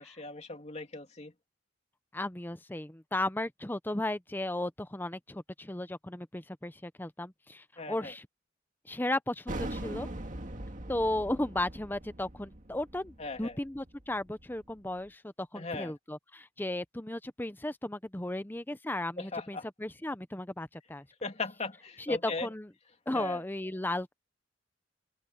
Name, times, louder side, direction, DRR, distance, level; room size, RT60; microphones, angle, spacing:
voice 1, 0.0-1.3 7.8-8.1 13.2-13.6 15.5-15.9 19.2-19.7 21.2-22.5 23.1-23.4, left 3 dB, 35° left, 2.8 m, -38 dB
voice 2, 2.1-8.3 8.8-10.1 10.9-21.1 22.0-22.7 23.1-24.1, left 1 dB, 10° left, 0.7 m, -35 dB
sound 1, 9.5-14.8, right 1 dB, 45° right, 2.0 m, -41 dB
head